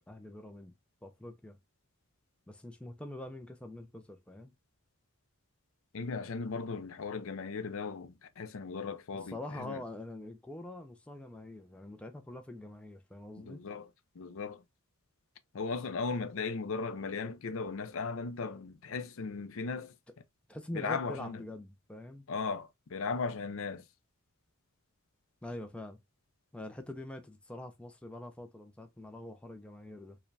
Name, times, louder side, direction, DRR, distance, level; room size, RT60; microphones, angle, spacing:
voice 1, 0.1-0.7 1.0-1.6 2.5-4.5 9.3-13.6 20.5-22.3 25.4-26.0 26.5-30.2, left 1 dB, 5° left, 0.4 m, -44 dB
voice 2, 5.9-9.8 13.4-13.9 14.1-14.6 15.5-20.0 20.7-21.4 22.3-23.8, left 4 dB, 65° left, 0.5 m, -37 dB
4.7 x 2.2 x 3.2 m
head